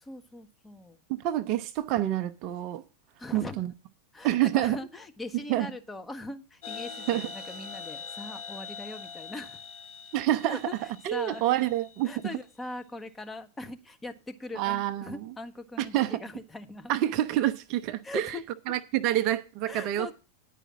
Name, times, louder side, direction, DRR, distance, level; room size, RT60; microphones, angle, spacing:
voice 1, 0.0-1.0 3.2-3.7 4.1-9.6 10.5-11.6 12.0-16.9 18.0-18.4 19.7-20.1, left 2 dB, 10° left, 0.9 m, -41 dB
voice 2, 1.1-2.8 3.3-3.7 4.2-4.8 5.5-5.7 7.1-7.3 10.1-10.6 11.0-12.1 14.6-15.3 15.8-16.2 16.9-18.4 18.7-20.1, right 13 dB, 40° right, 0.6 m, -27 dB
sound 1, 6.6-12.2, left 5 dB, 60° left, 3.3 m, -43 dB
10.0 x 5.0 x 7.3 m
figure-of-eight pair, 90°, 0 cm